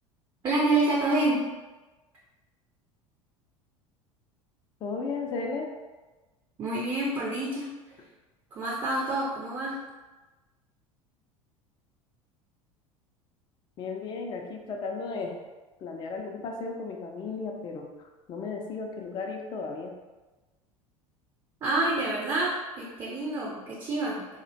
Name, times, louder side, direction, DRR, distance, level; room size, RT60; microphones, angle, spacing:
voice 1, 0.4-1.4 6.6-7.7 8.5-9.8 21.6-24.2, right 2 dB, 25° right, -5 dB, 0.5 m, -27 dB
voice 2, 4.8-5.7 13.8-15.4 15.8-17.9 18.3-19.9, left 4 dB, 25° left, 2 dB, 0.3 m, -34 dB
2.3 x 2.1 x 2.5 m, 1.2 s
figure-of-eight pair, 70°, 17 cm